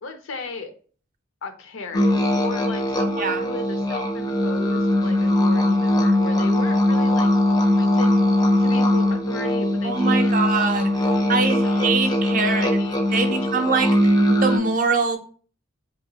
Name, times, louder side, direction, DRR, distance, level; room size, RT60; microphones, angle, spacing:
voice 1, 0.0-0.7 1.4-8.2 8.6-10.6 11.1-13.6, left 3 dB, 70° left, 8 dB, 0.5 m, -36 dB
sound 1, 1.9-14.6, left 1 dB, 20° left, 0.4 m, -20 dB
voice 2, 3.1-3.5 9.8-12.9 13.1-13.9 14.4-15.2, right 4 dB, 40° right, 6 dB, 0.5 m, -23 dB
4.1 x 2.8 x 2.7 m, 0.42 s
head